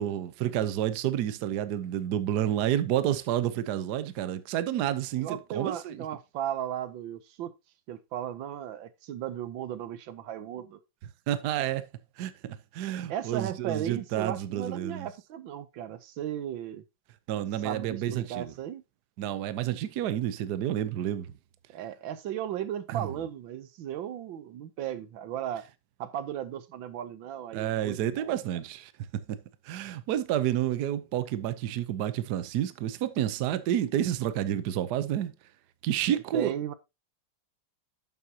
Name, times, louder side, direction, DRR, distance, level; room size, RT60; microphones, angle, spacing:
voice 1, 0.0-6.0 11.3-11.8 12.2-15.1 17.3-18.5 19.2-21.3 22.9-23.1 27.5-28.9 29.3-29.4 29.6-35.3 35.8-36.7, right 11 dB, 65° right, 1.2 m, -30 dB
voice 2, 5.2-7.5 7.9-10.8 13.1-16.8 17.6-18.8 21.7-25.6 26.0-28.4 36.1-36.7, right 10 dB, 85° right, 1.6 m, -36 dB
10.5 x 7.5 x 2.8 m
omnidirectional pair, 2.0 m